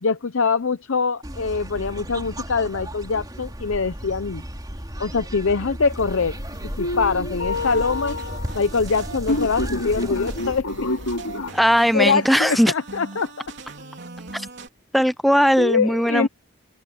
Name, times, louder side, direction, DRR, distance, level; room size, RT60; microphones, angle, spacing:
voice 1, 0.0-4.4 5.0-6.4 6.8-8.2 8.5-10.7 11.9-13.3 15.6-16.3, left 4 dB, 65° left, 0.7 m, -23 dB
sound 1, 1.2-10.6, equal, 20° right, 3.6 m, -35 dB
sound 2, 5.9-11.5, left 2 dB, 80° left, 3.2 m, -28 dB
sound 3, 7.5-14.7, right 3 dB, 55° right, 3.6 m, -41 dB
voice 2, 11.5-12.7 14.3-14.5 14.9-16.3, equal, ahead, 0.4 m, -18 dB
head